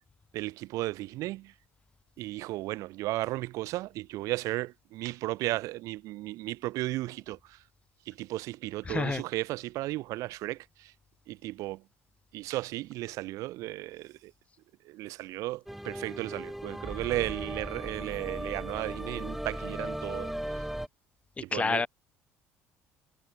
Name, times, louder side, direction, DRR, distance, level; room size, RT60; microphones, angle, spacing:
voice 1, 0.3-1.5 2.2-7.6 8.0-10.9 11.3-11.9 12.3-14.3 14.8-20.7 21.4-21.9, right 18 dB, 70° right, 3.0 m, -35 dB
voice 2, 8.9-9.2 21.4-21.9, left 4 dB, 20° left, 0.4 m, -29 dB
sound 1, 15.7-20.9, equal, 5° right, 4.1 m, -37 dB
supercardioid pair, 75°, 6 cm